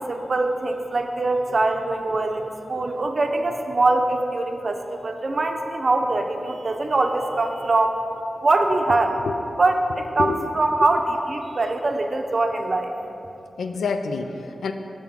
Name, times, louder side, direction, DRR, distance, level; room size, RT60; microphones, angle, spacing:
voice 1, 0.0-8.0 8.4-9.2 9.6-12.9, right 2 dB, 55° right, 4 dB, 0.5 m, -23 dB
voice 2, 13.6-14.7, left 4 dB, 90° left, 7 dB, 0.3 m, -27 dB
6.1 x 3.7 x 5.8 m, 2.9 s
cardioid pair, 45°, 0 cm